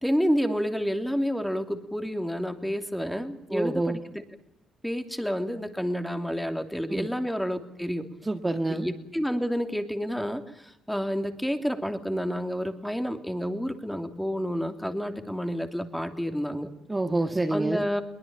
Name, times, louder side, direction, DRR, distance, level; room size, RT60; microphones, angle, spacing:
voice 1, 0.0-4.0 4.8-8.1 8.7-16.7 17.5-18.0, equal, ahead, 7 dB, 2.9 m, -29 dB
voice 2, 3.5-4.0 6.9-7.1 8.2-8.9 16.9-17.9, right 2 dB, 15° right, 5 dB, 1.6 m, -27 dB
22.5 x 19.5 x 8.9 m, 0.86 s
cardioid pair, 90°, 0 cm